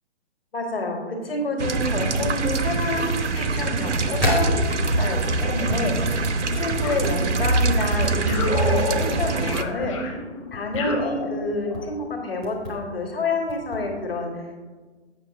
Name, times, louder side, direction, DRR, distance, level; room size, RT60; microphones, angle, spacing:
voice 1, 0.5-6.2 6.5-10.1 10.5-14.4, left 2 dB, 55° left, 3 dB, 1.7 m, -28 dB
sound 1, 1.6-9.6, right 3 dB, 80° right, 0.7 m, -24 dB
sound 2, 4.2-7.7 8.1-8.4 8.8-9.1 9.7-9.9 10.5-10.8 11.5-11.8 12.4-12.8 13.5-13.8, equal, ahead, 0.5 m, -29 dB
sound 3, 6.8-7.8 8.3-11.9, left 3 dB, 30° left, 0.9 m, -31 dB
7.8 x 6.0 x 4.1 m, 1.4 s
figure-of-eight pair, 135°, 35 cm